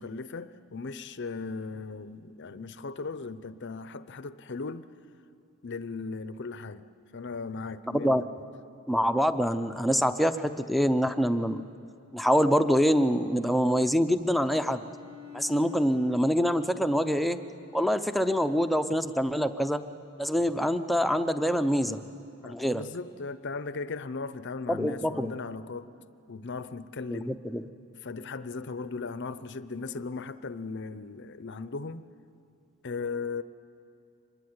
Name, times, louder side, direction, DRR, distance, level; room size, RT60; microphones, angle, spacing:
voice 1, 0.0-4.8 5.6-6.9 7.1-8.3 22.4-25.9 26.3-27.4 28.0-32.0 32.8-33.4, left 4 dB, 55° left, 0.7 m, -37 dB
voice 2, 8.9-11.6 12.1-14.8 15.3-17.4 17.7-19.8 20.2-22.0 22.4-22.8 24.7-25.3 27.1-27.6, equal, ahead, 0.6 m, -25 dB
Bowed string instrument, 14.6-19.3, left 8 dB, 80° right, 2.6 m, -50 dB
24.5 x 20.5 x 9.6 m
head